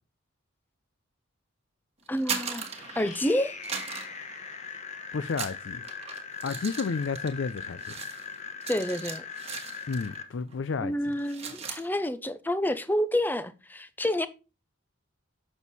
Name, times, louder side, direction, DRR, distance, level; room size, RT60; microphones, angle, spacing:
voice 1, 2.1-2.7 3.0-3.6 8.7-9.3 10.8-14.3, left 1 dB, 10° left, 0.5 m, -28 dB
sound 1, 2.1-3.3 3.6-4.9 5.3-10.2 10.5-10.7 11.0-11.9, right 6 dB, 30° right, 1.4 m, -38 dB
sound 2, 2.5-10.2, left 6 dB, 35° left, 1.1 m, -40 dB
voice 2, 5.1-5.8 6.4-7.9 9.9-11.2, left 5 dB, 65° left, 0.4 m, -31 dB
7.1 x 6.3 x 4.1 m
head